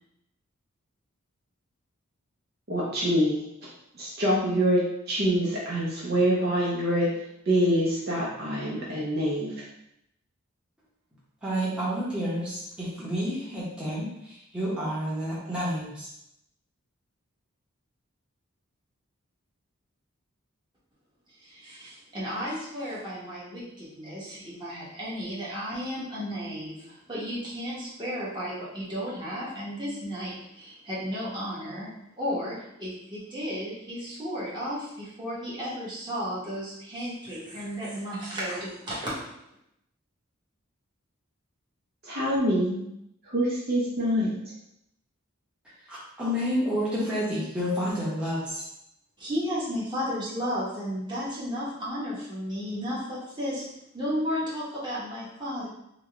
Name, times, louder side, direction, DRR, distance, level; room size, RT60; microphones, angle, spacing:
voice 1, 2.7-3.4 4.0-7.1 7.5-9.5 42.0-42.8 43.2-44.3, equal, 50° right, -5 dB, 0.7 m, -25 dB
voice 2, 11.4-16.1 45.9-48.6, equal, 5° right, -9 dB, 0.9 m, -30 dB
voice 3, 21.4-31.9 32.2-39.2 49.2-53.6 53.9-55.7, equal, 20° right, -8 dB, 1.2 m, -33 dB
4.0 x 2.2 x 3.4 m, 0.80 s
head